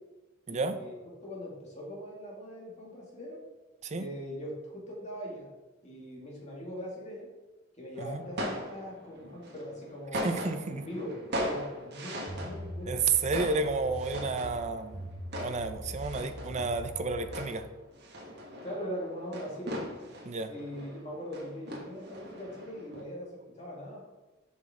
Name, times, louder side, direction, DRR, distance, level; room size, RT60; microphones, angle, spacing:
voice 1, 0.5-0.9 1.2-3.4 4.0-5.5 5.8-7.3 7.8-10.3 10.7-13.0 18.6-19.8 20.5-23.3 23.6-24.0, equal, 35° left, -4 dB, 2.4 m, -41 dB
sound 1, 7.9-23.0, equal, 55° right, 1.4 m, -40 dB
voice 2, 10.1-10.8 12.9-15.0 15.4-17.6 20.2-20.5, right 4 dB, 35° right, 9 dB, 0.5 m, -31 dB
sound 2, 12.3-17.5, equal, 5° right, 0.9 m, -42 dB
7.3 x 6.0 x 3.7 m, 1.1 s
head